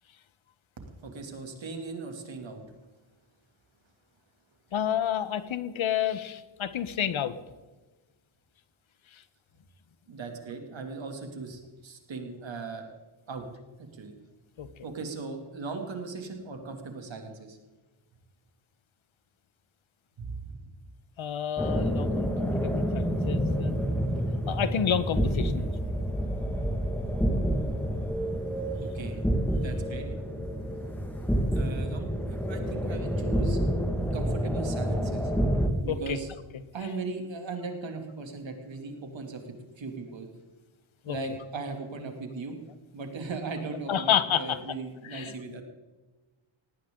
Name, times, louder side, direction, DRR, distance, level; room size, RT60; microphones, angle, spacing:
voice 1, 0.8-2.6 10.1-12.9 13.3-13.5 13.9-14.1 14.8-17.6 20.2-20.8 24.0-24.1 28.8-29.2 29.4-30.1 31.5-33.6 34.1-35.3 35.8-36.3 36.7-39.4 39.8-40.3 41.1-42.6 42.9-45.6, right 3 dB, 70° right, 4 dB, 2.8 m, -38 dB
voice 2, 4.7-7.4 14.6-14.7 21.2-23.8 24.5-25.7 35.9-36.2 41.1-41.2 43.9-44.6 45.0-45.3, left 9 dB, 85° left, 13 dB, 1.1 m, -29 dB
sound 1, 21.6-35.7, equal, 5° left, 1.8 m, -28 dB
19.0 x 17.5 x 3.9 m, 1.2 s
wide cardioid pair, 165°, 46 cm